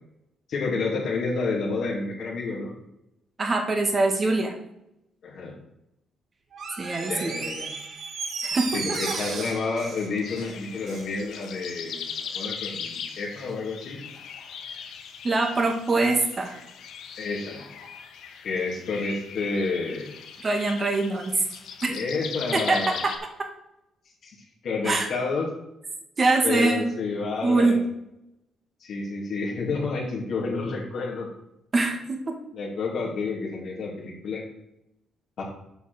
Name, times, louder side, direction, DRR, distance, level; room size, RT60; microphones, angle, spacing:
voice 1, 0.5-2.7 5.2-5.5 7.1-7.7 8.7-14.0 17.2-17.7 18.4-20.1 21.8-23.0 24.2-24.3 24.6-25.5 26.4-27.8 28.8-31.3 32.5-34.4 35.4-35.5, left 4 dB, 65° left, -3 dB, 2.6 m, -29 dB
voice 2, 3.4-4.5 6.8-7.3 8.4-9.2 15.2-16.6 20.4-21.3 21.8-21.9 22.5-23.1 24.8-25.1 26.2-26.9 27.4-27.8 31.7-32.3, right 3 dB, 35° right, 4 dB, 2.0 m, -23 dB
Door, 6.5-11.1 11.4-11.5, right 4 dB, 65° right, 1.8 m, -34 dB
sound 1, 10.2-23.2, left 7 dB, 80° left, 1.3 m, -39 dB
8.1 x 5.6 x 6.7 m, 0.85 s
cardioid pair, 90°, 0 cm